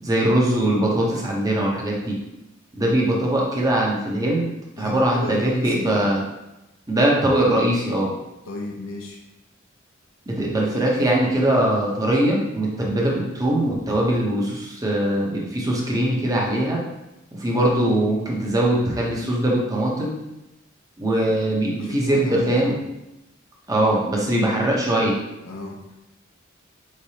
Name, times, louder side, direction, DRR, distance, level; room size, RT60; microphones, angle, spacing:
voice 1, 0.0-2.1 2.8-4.5 4.8-6.2 6.9-8.1 10.3-16.8 17.3-20.1 21.0-22.7 23.7-25.2, right 1 dB, 20° right, -3 dB, 0.8 m, -21 dB
voice 2, 4.8-6.1 8.5-9.2 21.7-22.8 25.4-26.0, left 2 dB, 90° left, 0 dB, 0.7 m, -34 dB
4.5 x 3.3 x 2.8 m, 0.95 s
head